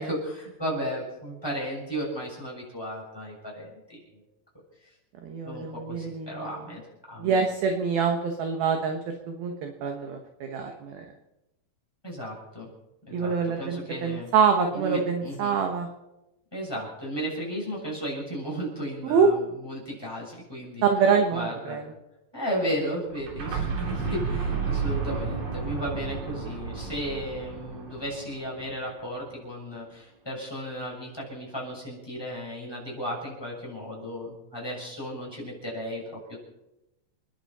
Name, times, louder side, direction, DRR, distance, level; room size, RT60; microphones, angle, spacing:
voice 1, 0.0-4.0 5.4-6.8 7.1-7.3 12.0-12.7 13.1-14.3 14.7-15.6 16.5-20.8 21.3-21.8 22.3-36.4, equal, 5° left, -3 dB, 6.8 m, -34 dB
voice 2, 5.2-6.5 7.2-9.0 9.3-11.0 13.1-15.9 19.1-19.3 20.8-21.8, right 6 dB, 70° right, 4 dB, 2.5 m, -25 dB
sound 1, 23.1-28.9, right 5 dB, 50° right, 4.3 m, -32 dB
30.0 x 11.0 x 4.3 m, 0.94 s
omnidirectional pair, 5.7 m